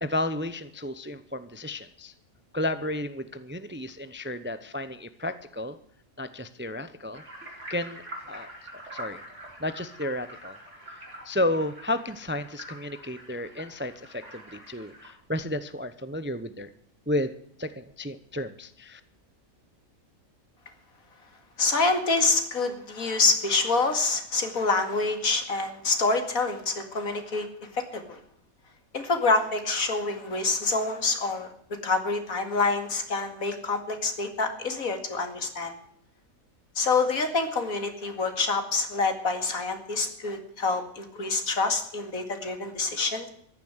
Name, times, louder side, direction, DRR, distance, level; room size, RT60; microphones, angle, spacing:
voice 1, 0.0-2.1 2.5-5.8 6.2-7.2 7.7-8.5 8.9-9.2 9.6-10.6 11.2-16.7 17.1-17.3 17.6-19.0, left 1 dB, 15° right, 12 dB, 0.5 m, -32 dB
sound 1, 7.1-15.1, right 1 dB, 55° right, 4.8 m, -45 dB
voice 2, 21.6-27.5 27.7-28.2 28.9-31.5 31.8-35.8 36.8-43.3, left 3 dB, 80° left, 7 dB, 2.6 m, -26 dB
14.5 x 11.0 x 7.9 m, 0.67 s
omnidirectional pair, 1.4 m